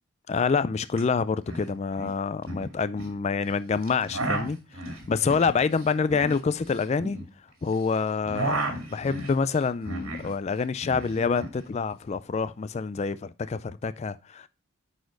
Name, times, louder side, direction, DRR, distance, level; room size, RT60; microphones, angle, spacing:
voice 1, 0.3-4.6 5.1-7.2 7.6-14.5, left 5 dB, 30° left, 0.3 m, -27 dB
sound 1, 0.9-1.0 1.3-1.7 1.9-3.1 3.8-7.8 8.1-10.3 10.6-11.6, right 2 dB, 85° right, 2.1 m, -33 dB
9.4 x 4.2 x 3.9 m
head